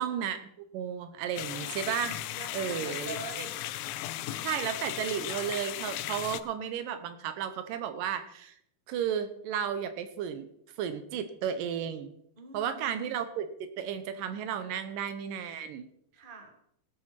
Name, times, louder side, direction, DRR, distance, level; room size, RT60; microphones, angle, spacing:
voice 1, 0.0-2.2 2.5-3.2 4.4-8.6 8.9-10.5 10.8-12.1 12.5-15.9, right 8 dB, 75° right, 10 dB, 2.4 m, -33 dB
sound 1, 1.4-6.4, left 15 dB, 80° left, 1.9 m, -36 dB
voice 2, 2.3-3.5 4.1-4.6 12.4-13.0 16.1-16.5, right 3 dB, 30° right, 3 dB, 0.9 m, -44 dB
18.0 x 8.2 x 4.4 m, 0.71 s
omnidirectional pair, 4.1 m